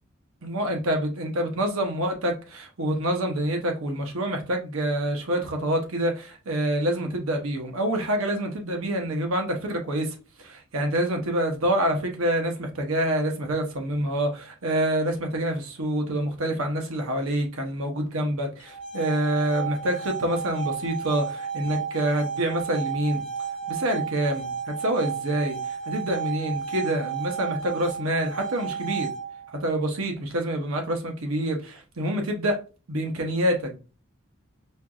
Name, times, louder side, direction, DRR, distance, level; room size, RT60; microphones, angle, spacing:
voice 1, 0.4-23.2 23.7-29.1 29.6-32.6 32.9-33.8, right 1 dB, 80° right, 0.8 m, -27 dB
sound 1, 18.6-29.6, right 6 dB, 25° left, 0.7 m, -33 dB
4.4 x 2.5 x 2.3 m
head